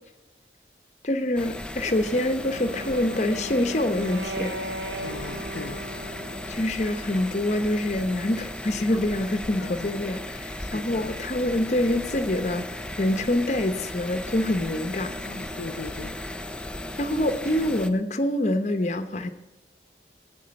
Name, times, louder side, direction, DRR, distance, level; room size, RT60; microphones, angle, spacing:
voice 1, 1.0-4.6 6.5-12.7 13.0-15.1 17.0-19.3, left 1 dB, 40° left, 9 dB, 0.8 m, -25 dB
sound 1, 1.4-17.9, left 1 dB, 5° left, 0.4 m, -36 dB
Wind instrument woodwind instrument, 2.2-6.8, right 1 dB, 75° right, 0.9 m, -37 dB
voice 2, 5.0-5.9 9.6-9.9 10.6-11.1 15.2-16.2, left 3 dB, 85° left, 2 dB, 0.6 m, -39 dB
sound 2, 5.2-5.5 7.1-7.3 8.4-8.5 8.9-9.0 10.0-10.2 10.6-16.3 17.9-18.0, equal, 15° right, 2.7 m, -49 dB
9.3 x 7.7 x 7.6 m, 1.0 s
head